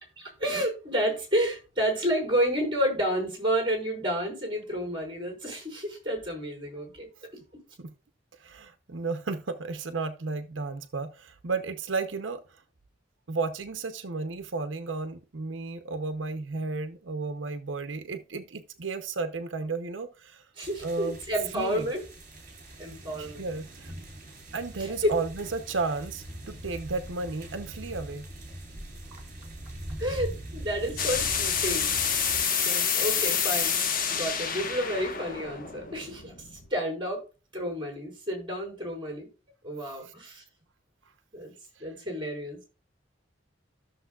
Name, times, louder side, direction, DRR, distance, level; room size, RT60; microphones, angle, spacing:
voice 1, 0.2-7.1 7.3-7.4 20.6-22.0 22.8-23.4 24.8-25.1 30.0-32.2 32.5-33.8 34.1-36.3 36.7-37.2 37.5-39.3 39.6-40.4 41.3-41.5 41.8-42.6, equal, 25° right, 4.8 m, -30 dB
voice 2, 8.4-12.6 13.3-20.4 20.8-21.2 21.5-21.9 22.9-23.9 24.5-28.3 40.0-40.1 41.8-41.9, right 4 dB, 90° right, 0.8 m, -33 dB
sound 1, 20.6-32.4, right 1 dB, 45° right, 4.1 m, -42 dB
sound 2, 31.0-36.7, left 7 dB, 50° left, 1.2 m, -28 dB
14.0 x 6.7 x 2.4 m
head